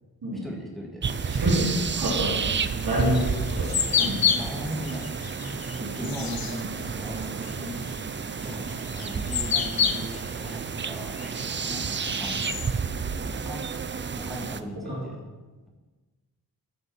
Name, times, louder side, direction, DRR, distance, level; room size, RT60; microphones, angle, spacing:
voice 1, 0.4-1.0 2.3-2.4 2.9-3.2 3.9-5.0 5.4-8.1 8.4-11.2 11.7-12.5 13.4-13.6 14.2-15.2, equal, ahead, -2 dB, 1.9 m, -38 dB
sound 1, 1.0-14.6, right 5 dB, 30° right, 0.4 m, -31 dB
voice 2, 1.3-2.3 2.8-4.2 5.8-6.4 7.6-7.9 14.8-15.0, right 1 dB, 75° right, -3 dB, 3.0 m, -28 dB
sound 2, 2.6-12.7, left 7 dB, 70° left, 0.9 m, -31 dB
13.5 x 7.5 x 4.3 m, 1.3 s
wide cardioid pair, 155°, 36 cm